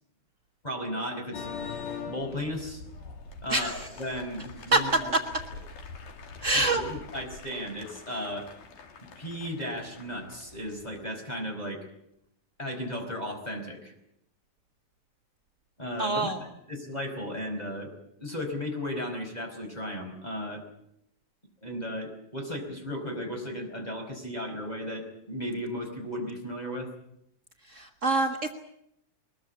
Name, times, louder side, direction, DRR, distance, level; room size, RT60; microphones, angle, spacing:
voice 1, 0.6-1.5 2.1-2.8 3.4-5.1 6.5-8.5 9.2-11.8 12.6-13.9 15.8-17.9 18.2-20.6 21.6-26.9, equal, 10° left, 3 dB, 4.9 m, -35 dB
sound 1, 1.3-11.1, left 5 dB, 80° left, 3.8 m, -43 dB
voice 2, 6.4-6.8 16.0-16.4 27.7-28.5, right 2 dB, 60° right, 4 dB, 0.7 m, -25 dB
22.0 x 21.0 x 8.6 m, 0.79 s
omnidirectional pair, 3.6 m